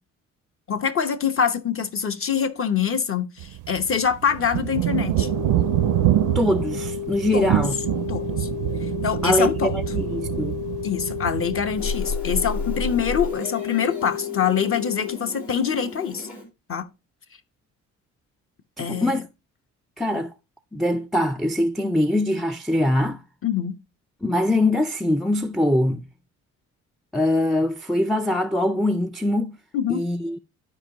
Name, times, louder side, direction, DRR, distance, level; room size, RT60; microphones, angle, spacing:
voice 1, 0.7-5.3 7.3-7.6 8.1-8.5 9.0-9.8 10.8-16.3 16.7-16.9 18.8-19.1 23.4-23.8 29.7-30.0, left 7 dB, 45° left, 1.0 m, -24 dB
sound 1, 3.4-11.8, right 15 dB, 85° right, 0.5 m, -25 dB
sound 2, 5.2-15.2, left 13 dB, 90° left, 0.5 m, -32 dB
voice 2, 6.3-7.8 9.2-10.6 18.8-19.3 20.0-20.3 20.7-23.2 24.2-26.1 27.1-29.6 29.9-30.4, left 1 dB, ahead, 0.3 m, -23 dB
Meow, 11.8-16.4, left 3 dB, 70° left, 3.8 m, -32 dB
12.0 x 4.7 x 2.9 m
cardioid pair, 90°, 30 cm